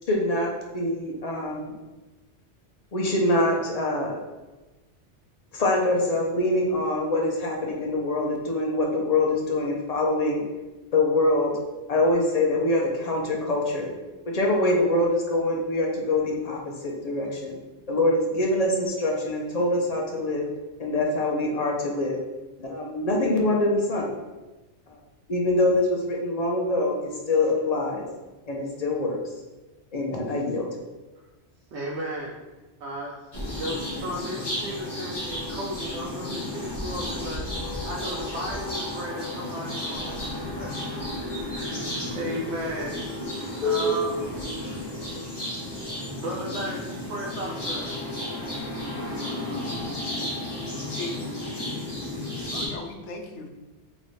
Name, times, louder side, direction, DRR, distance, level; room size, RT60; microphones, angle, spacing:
voice 1, 0.1-1.7 2.9-4.2 5.5-10.5 10.9-11.5 11.9-13.9 14.3-17.6 17.9-20.5 20.8-22.2 22.6-24.1 25.3-28.0 28.5-29.2 29.9-30.7 43.6-44.0, left 2 dB, 45° left, 0 dB, 0.6 m, -24 dB
voice 2, 31.7-32.3 32.8-33.1 33.4-37.4 37.8-40.2 40.6-41.0 41.5-43.0 43.6-44.2 46.2-47.9, equal, 75° right, -2 dB, 0.9 m, -35 dB
sound 1, 33.3-52.7, left 1 dB, 25° left, 1.0 m, -33 dB
voice 3, 50.8-51.7 52.5-53.5, left 3 dB, 85° left, 3 dB, 0.9 m, -38 dB
3.3 x 3.0 x 4.0 m, 1.1 s
omnidirectional pair, 1.2 m